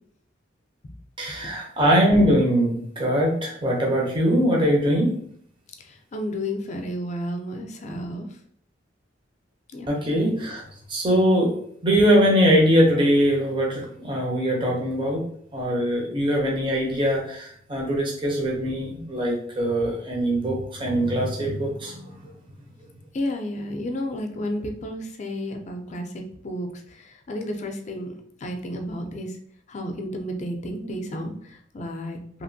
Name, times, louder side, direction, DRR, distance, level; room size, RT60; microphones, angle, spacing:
voice 1, 1.2-5.1 9.9-10.6 10.9-11.5 11.8-15.2 15.5-22.0, equal, 25° right, -1 dB, 0.5 m, -22 dB
voice 2, 5.8-8.3 9.7-9.9 16.5-17.0 23.1-28.1 28.4-29.3 29.7-32.4, left 1 dB, 40° left, 4 dB, 0.4 m, -32 dB
2.8 x 2.5 x 2.6 m, 0.65 s
head